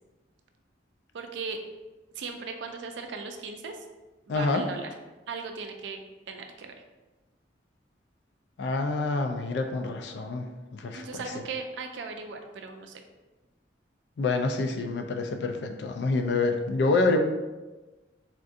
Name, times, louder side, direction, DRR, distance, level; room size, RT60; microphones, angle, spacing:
voice 1, 1.1-1.6 2.2-3.8 4.3-4.9 5.3-6.0 6.3-6.7 10.9-13.0, right 4 dB, 70° right, 5 dB, 0.4 m, -37 dB
voice 2, 4.3-4.6 8.6-11.2 14.2-17.2, left 3 dB, 65° left, 5 dB, 0.3 m, -27 dB
3.5 x 2.6 x 2.4 m, 1.2 s
head